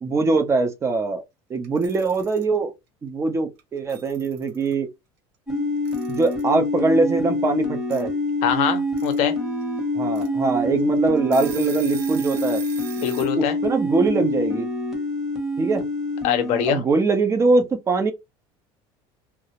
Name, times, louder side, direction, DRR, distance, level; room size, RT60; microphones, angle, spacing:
voice 1, 0.0-1.2 1.5-2.7 3.0-4.9 6.1-8.1 9.9-12.6 13.4-14.7 15.6-15.9 16.7-18.1, right 3 dB, 25° right, 0.5 m, -22 dB
Alarm / Clock, 1.6-2.4 3.6-3.7 3.9-4.7 5.9-6.5 7.9-8.0 8.8-9.2 9.6-9.7 10.1-10.3 10.8-10.9 11.2-13.3, right 9 dB, 85° right, 1.1 m, -40 dB
sound 1, 5.5-16.7, left 1 dB, 5° right, 0.8 m, -26 dB
voice 2, 8.4-9.4 13.0-13.6 16.2-16.8, left 9 dB, 60° left, 0.6 m, -23 dB
2.3 x 2.0 x 2.8 m
supercardioid pair, 125°, 12 cm